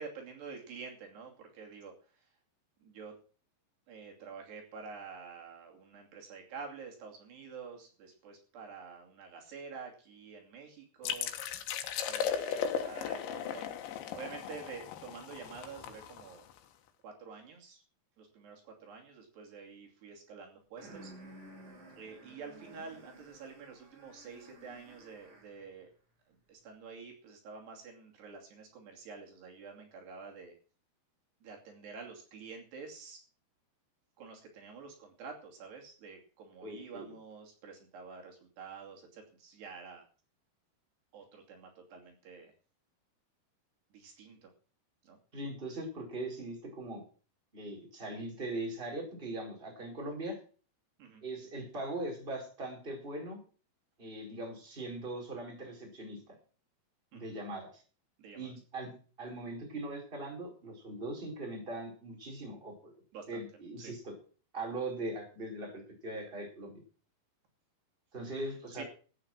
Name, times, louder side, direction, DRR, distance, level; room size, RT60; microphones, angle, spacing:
voice 1, 0.0-2.2 2.8-3.1 3.9-11.3 12.1-16.4 17.0-17.8 18.2-21.1 22.0-25.9 26.3-30.5 31.4-33.2 34.2-40.0 41.1-42.5 43.9-44.5 45.0-45.2 51.0-51.2 57.1-57.3 58.2-58.5 63.1-63.4 63.8-63.9 68.7-68.8, right 5 dB, 65° right, 1 dB, 4.7 m, -48 dB
sound 1, 11.0-16.6, left 8 dB, 90° left, 3.7 m, -36 dB
sound 2, 20.8-25.7, right 1 dB, 45° right, 5.6 m, -54 dB
voice 2, 36.6-37.1 45.3-47.0 47.5-50.4 51.2-53.4 54.0-56.2 57.1-57.8 58.3-58.9 59.2-62.9 63.3-64.2 64.5-66.8 68.1-68.8, right 2 dB, 10° right, 0 dB, 4.5 m, -40 dB
14.5 x 9.1 x 6.2 m, 0.39 s
omnidirectional pair, 5.1 m